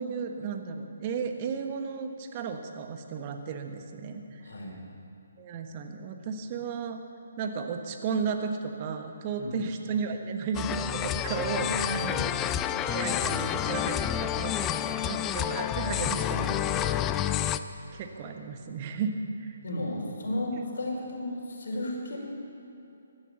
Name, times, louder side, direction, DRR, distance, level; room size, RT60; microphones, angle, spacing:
voice 1, 0.0-4.5 5.4-7.0 7.4-12.0 12.8-14.7 15.0-17.3 17.9-19.6, right 5 dB, 35° right, 5 dB, 1.3 m, -34 dB
voice 2, 4.4-4.8 9.3-9.5 11.5-12.2 19.6-22.2, left 1 dB, 65° left, -2 dB, 5.0 m, -33 dB
sound 1, 10.5-17.6, left 10 dB, 20° left, 0.4 m, -29 dB
16.0 x 12.0 x 7.1 m, 2.8 s
figure-of-eight pair, 145°, 0 cm